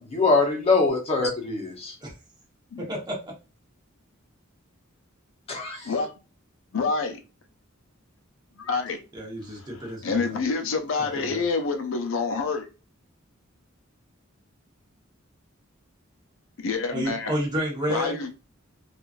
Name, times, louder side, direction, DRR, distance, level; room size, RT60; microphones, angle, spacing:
voice 1, 0.1-1.9 5.5-5.8, left 3 dB, 30° left, 0.9 m, -23 dB
voice 2, 2.8-3.2 9.1-10.4 11.0-11.4 16.9-18.2, equal, 20° right, 1.0 m, -30 dB
voice 3, 6.7-7.2 8.6-9.0 9.6-12.7 16.6-17.3 17.9-18.3, left 4 dB, 70° left, 0.5 m, -27 dB
3.0 x 2.4 x 2.4 m
head